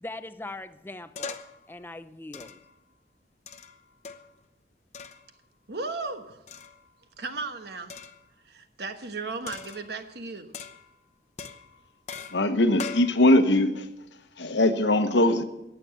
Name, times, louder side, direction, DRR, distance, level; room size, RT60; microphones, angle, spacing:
voice 1, 0.0-1.4 1.7-2.6, left 2 dB, 10° left, 12 dB, 0.4 m, -40 dB
sound 1, 1.2-1.6 2.3-2.8 3.5-4.4 4.9-5.3 6.5-7.0 7.9-8.3 9.5-10.1 10.5-11.0 11.4-13.1, left 5 dB, 40° left, 0.8 m, -41 dB
voice 2, 5.7-6.4 7.2-8.0 8.4-10.5, right 3 dB, 60° right, 7 dB, 1.2 m, -35 dB
voice 3, 12.3-13.9 14.4-15.4, left 1 dB, 75° left, 9 dB, 1.1 m, -21 dB
18.0 x 7.0 x 7.0 m, 0.92 s
head